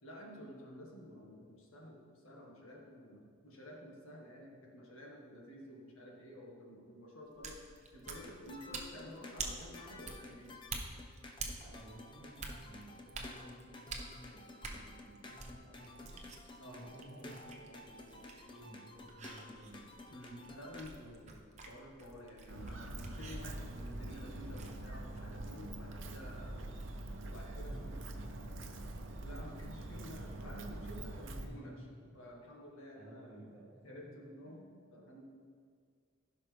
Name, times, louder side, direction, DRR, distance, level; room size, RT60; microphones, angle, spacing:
voice 1, 0.0-10.5 16.6-16.8 20.1-26.6 27.2-28.0 29.2-31.9 32.1-33.4 33.8-35.2, left 1 dB, 85° left, -2 dB, 1.7 m, -51 dB
sound 1, 7.3-24.9, right 4 dB, 35° right, 0.9 m, -49 dB
sound 2, 8.0-20.9, left 2 dB, 25° left, 0.6 m, -53 dB
voice 2, 11.6-16.2 16.7-18.2 18.5-19.9 27.5-29.0 31.3-31.7 32.9-33.9 34.2-34.3, right 1 dB, 15° right, -8 dB, 2.8 m, -55 dB
Walk footsteps, 22.5-31.5, right 1 dB, 65° right, 0.8 m, -44 dB
15.5 x 5.8 x 3.5 m, 2.1 s
head